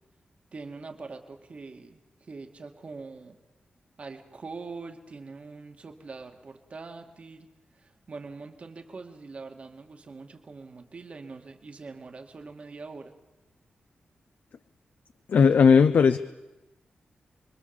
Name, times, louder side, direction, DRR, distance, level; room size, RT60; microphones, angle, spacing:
voice 1, 0.5-2.0 2.3-3.4 4.0-7.5 7.8-13.1, right 4 dB, 40° right, 5 dB, 2.4 m, -43 dB
voice 2, 15.3-16.2, left 6 dB, 65° left, 10 dB, 0.8 m, -17 dB
30.0 x 22.5 x 7.3 m, 1.0 s
wide cardioid pair, 170°, 3 cm